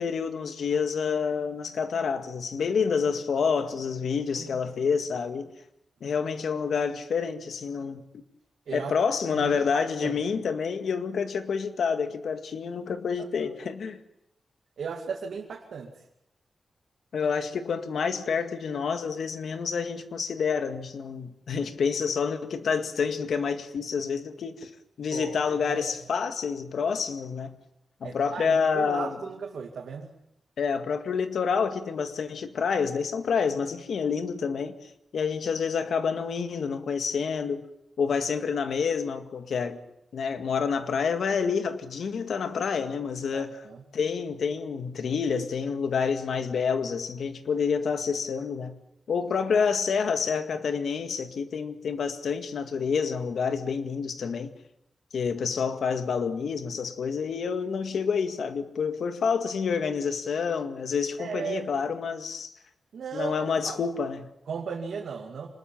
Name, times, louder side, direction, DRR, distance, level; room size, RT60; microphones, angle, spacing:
voice 1, 0.0-5.5 6.0-8.2 8.7-14.0 17.1-24.7 25.0-27.6 28.0-29.2 30.6-37.7 38.0-39.8 40.1-43.6 43.9-48.8 49.1-54.5 55.1-62.5 63.1-64.3, left 6 dB, 80° left, 2.0 m, -28 dB
voice 2, 9.3-10.2 13.4-13.5 14.8-15.9 25.1-25.4 25.7-25.9 28.0-30.2 43.3-43.8 61.2-61.6 62.9-63.8 64.5-65.5, right 6 dB, 85° right, 2.5 m, -36 dB
26.0 x 20.5 x 7.3 m
wide cardioid pair, 130°, 0 cm